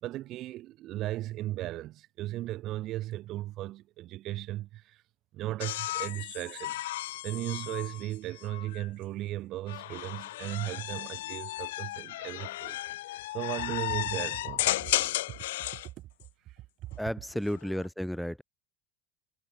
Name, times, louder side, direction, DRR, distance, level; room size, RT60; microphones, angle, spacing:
voice 1, 0.0-5.0 5.3-6.9 7.2-12.8 13.3-14.9 16.0-16.1, right 15 dB, 40° right, 0.7 m, -36 dB
sound 1, 5.6-8.9 9.7-15.9 17.3-17.9, left 16 dB, 85° left, 1.0 m, -34 dB
voice 2, 17.0-18.4, equal, ahead, 0.4 m, -33 dB
supercardioid pair, 150°, 0 cm